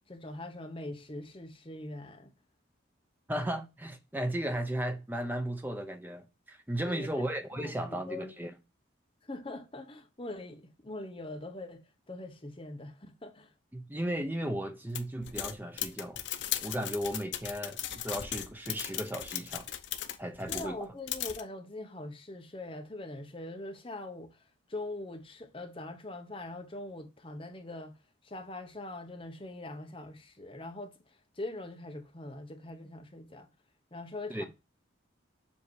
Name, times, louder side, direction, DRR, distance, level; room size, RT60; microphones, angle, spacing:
voice 1, 0.1-2.3 6.8-7.2 7.5-8.5 9.2-11.8 12.1-13.5 20.5-24.4 24.7-28.0 28.2-33.5 33.9-34.5, left 2 dB, 25° left, 0.9 m, -42 dB
voice 2, 3.3-8.5 13.7-16.2 16.6-19.7 20.2-20.8 34.3-34.5, right 1 dB, 10° right, 0.6 m, -35 dB
sound 1, 14.9-20.8 21.1-21.4, left 11 dB, 65° left, 0.6 m, -37 dB
7.3 x 2.8 x 4.7 m
head